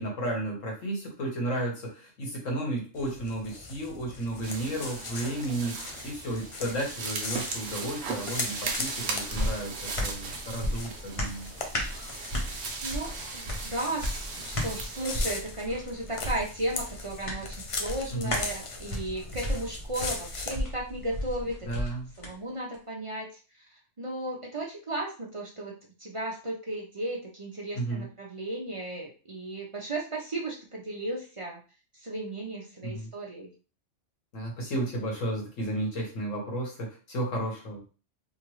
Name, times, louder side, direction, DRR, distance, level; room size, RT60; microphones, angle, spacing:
voice 1, 0.0-11.5 18.1-18.3 21.6-22.1 27.7-28.1 32.8-33.1 34.3-37.8, right 1 dB, 90° left, -1 dB, 1.6 m, -33 dB
sound 1, 2.9-20.5, left 3 dB, 55° left, 0.3 m, -40 dB
sound 2, 4.4-15.4, right 4 dB, 65° right, 0.9 m, -38 dB
sound 3, 8.7-22.3 22.7-22.8, left 1 dB, 30° left, 0.8 m, -35 dB
voice 2, 12.8-21.6 22.2-23.3 24.0-25.7 26.0-31.6 32.0-33.5, right 1 dB, 35° right, -2 dB, 0.5 m, -35 dB
3.7 x 2.3 x 3.0 m, 0.35 s
omnidirectional pair, 1.3 m